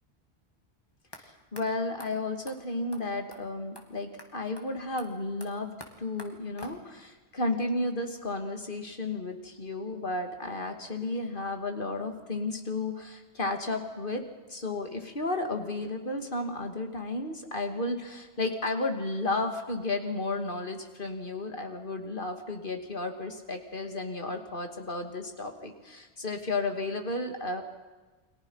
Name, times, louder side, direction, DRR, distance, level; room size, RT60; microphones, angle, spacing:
sound 1, 1.1-1.2 1.6-1.7 2.0-2.1 2.5-2.6 2.9-3.0 3.3-3.4 3.8-3.9 4.2-4.3 4.6-4.7 5.0-7.1, left 1 dB, 20° left, 2.6 m, -48 dB
voice 1, 1.2-14.2 14.5-27.6, left 2 dB, 55° left, 5 dB, 2.6 m, -33 dB
29.5 x 23.0 x 5.7 m, 1.2 s
omnidirectional pair, 1.1 m